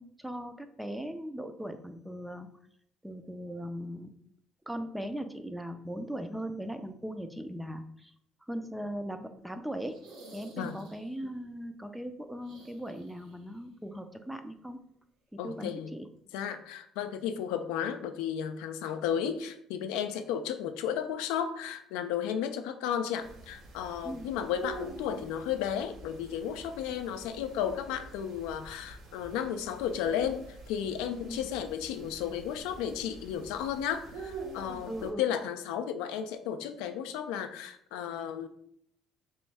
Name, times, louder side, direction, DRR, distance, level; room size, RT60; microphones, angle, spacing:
voice 1, 0.0-2.5 3.0-4.1 4.7-8.1 8.5-10.0 10.3-14.8 15.4-16.1 24.0-24.3 31.2-31.4 34.9-35.2, equal, 5° right, 8 dB, 0.4 m, -39 dB
sound 1, 9.9-11.3 12.4-13.6 13.8-13.9 15.6-15.7, right 2 dB, 85° right, 1.1 m, -54 dB
voice 2, 15.4-15.9 16.3-38.5, left 9 dB, 90° left, 8 dB, 0.3 m, -33 dB
sound 2, 23.2-35.1, right 3 dB, 65° right, 0.7 m, -47 dB
3.4 x 3.1 x 3.3 m, 0.70 s
cardioid pair, 90°, 0 cm